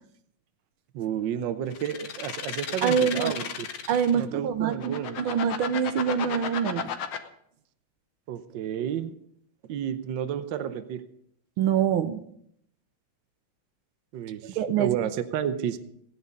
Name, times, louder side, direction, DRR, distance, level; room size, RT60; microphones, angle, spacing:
voice 1, 0.9-3.7 4.1-5.2 8.3-9.2 9.6-11.0 14.1-15.8, right 9 dB, 65° right, 12 dB, 1.4 m, -31 dB
sound 1, 1.7-4.2 4.7-7.2, left 8 dB, 80° left, 1.9 m, -33 dB
voice 2, 2.8-3.3 3.9-6.9 11.6-12.2 14.6-15.0, right 8 dB, 85° right, 10 dB, 1.6 m, -25 dB
16.5 x 9.7 x 5.2 m, 0.70 s
omnidirectional pair, 2.3 m